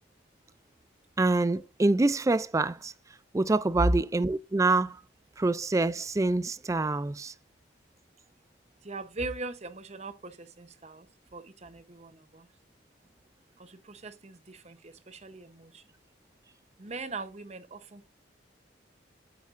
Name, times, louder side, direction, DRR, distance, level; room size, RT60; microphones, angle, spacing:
voice 1, 1.2-2.9 3.3-5.0 5.4-7.3, right 2 dB, 15° right, 0.3 m, -26 dB
voice 2, 8.8-11.1 11.3-12.5 13.6-15.8 16.8-18.1, right 2 dB, 35° right, 0.9 m, -39 dB
8.6 x 8.3 x 2.5 m
head